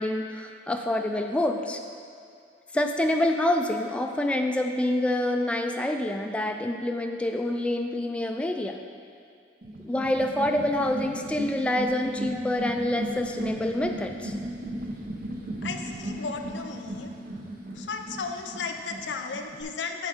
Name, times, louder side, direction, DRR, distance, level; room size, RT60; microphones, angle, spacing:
voice 1, 0.0-1.8 2.7-8.8 9.8-14.3, left 1 dB, 5° left, 3 dB, 0.3 m, -27 dB
sound 1, 9.6-19.6, right 1 dB, 55° right, 0.7 m, -36 dB
voice 2, 15.6-17.1 17.7-20.1, left 5 dB, 90° left, 5 dB, 0.5 m, -35 dB
6.9 x 4.8 x 5.3 m, 2.4 s
head